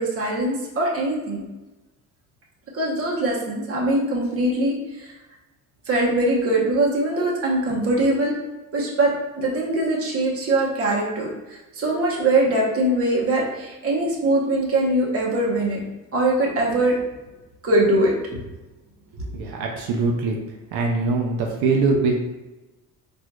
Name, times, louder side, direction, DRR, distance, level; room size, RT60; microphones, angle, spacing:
voice 1, 0.0-1.4 2.7-5.1 5.8-8.4 8.7-15.8 16.1-17.0 17.6-18.4 19.2-19.3, right 1 dB, 40° right, -3 dB, 1.0 m, -22 dB
voice 2, 19.3-20.4 20.7-22.1, right 3 dB, 85° right, 0 dB, 0.6 m, -22 dB
4.3 x 2.6 x 2.3 m, 1.1 s
cardioid pair, 110°, 37 cm